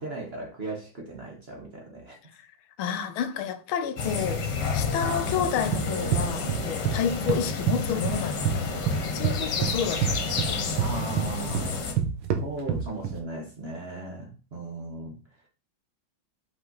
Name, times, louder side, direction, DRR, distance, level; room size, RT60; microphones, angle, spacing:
voice 1, 0.0-2.2 10.7-11.9 12.4-15.2, right 2 dB, 40° right, 1.1 m, -37 dB
voice 2, 2.8-4.5 4.7-8.7 9.0-10.6, left 8 dB, 85° left, 1.5 m, -30 dB
sound 1, 4.0-11.9, left 4 dB, 60° left, 1.7 m, -30 dB
sound 2, 5.4-7.0 7.3-8.6 8.9-13.2, right 8 dB, 80° right, 1.7 m, -27 dB
5.5 x 5.4 x 3.9 m
omnidirectional pair, 2.2 m